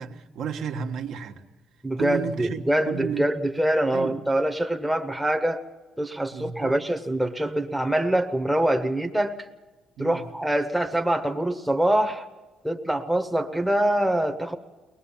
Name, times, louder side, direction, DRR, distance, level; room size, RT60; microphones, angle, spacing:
voice 1, 0.0-1.4 2.0-3.2 3.9-4.1 6.3-6.9 10.0-10.2, right 7 dB, 65° right, 4 dB, 1.3 m, -32 dB
voice 2, 1.8-5.6 6.0-9.5 10.0-12.3 12.6-14.6, right 1 dB, 5° right, 5 dB, 0.8 m, -24 dB
23.0 x 19.0 x 7.2 m, 1.3 s
cardioid pair, 155°, 0 cm